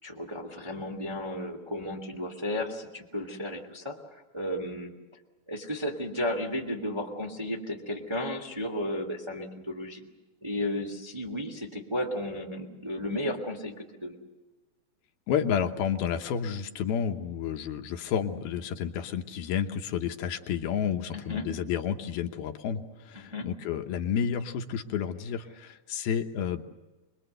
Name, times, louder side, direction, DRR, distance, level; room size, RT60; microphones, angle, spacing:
voice 1, 0.0-4.9 5.5-10.1 10.4-14.2 21.1-21.5 23.1-23.5, left 1 dB, 10° right, 1 dB, 1.8 m, -34 dB
voice 2, 15.3-26.6, left 8 dB, 80° left, 6 dB, 3.0 m, -30 dB
27.5 x 21.5 x 8.0 m, 1.2 s
omnidirectional pair, 4.3 m